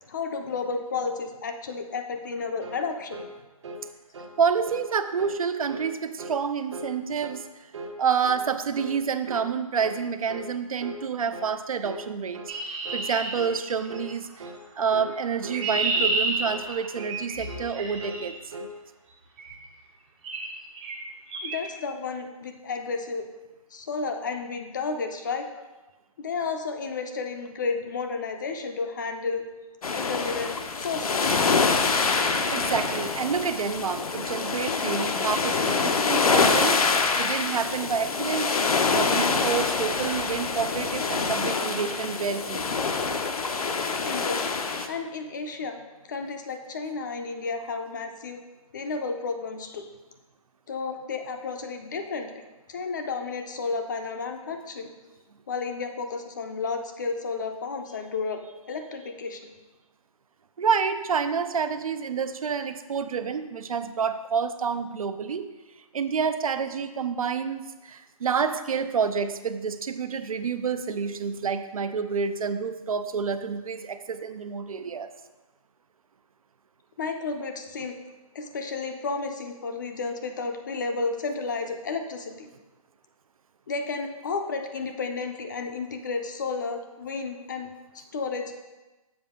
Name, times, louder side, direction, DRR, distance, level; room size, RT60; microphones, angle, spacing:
voice 1, 0.1-3.2 21.4-23.3 23.7-25.5 26.2-29.4 29.9-31.3 44.0-44.6 44.9-48.4 48.7-49.9 50.7-52.4 52.7-54.9 55.5-58.4 58.7-59.5 77.0-78.0 78.3-82.5 83.7-88.6, left 4 dB, 30° left, 6 dB, 0.5 m, -32 dB
sound 1, 2.6-2.8 3.1-3.3 3.6-3.9 4.1-4.4 4.7-4.9 5.2-5.4 5.7-5.9 6.2-6.4 6.7-6.9 7.2-7.4 7.7-8.0 8.2-8.5 8.7-9.0 9.3-9.5 9.8-10.0 10.3-10.5 10.8-11.0 11.3-11.5 11.8-12.1 12.3-12.6 12.8-13.1 13.4-13.6 13.9-14.1 14.4-14.6 14.9-15.1 15.4-15.6 15.9-16.2 16.4-16.7 16.9-17.2 17.5-17.7 18.0-18.7, right 1 dB, 50° right, 0.9 m, -39 dB
voice 2, 4.4-7.5 8.0-12.4 12.9-14.3 14.8-18.4 32.5-36.8 37.1-38.5 38.8-42.6 60.6-65.5 65.9-75.1, right 6 dB, 70° right, 10 dB, 0.5 m, -28 dB
Chirp tweet, 12.5-14.1 15.1-18.3 19.4-19.6 20.2-20.5 20.8-21.0 21.3-21.6, right 2 dB, 15° right, 0.6 m, -30 dB
sound 2, 29.8-44.9, left 4 dB, 80° left, 0.7 m, -25 dB
7.3 x 5.0 x 3.6 m, 1.1 s
hypercardioid pair, 160°, 19 cm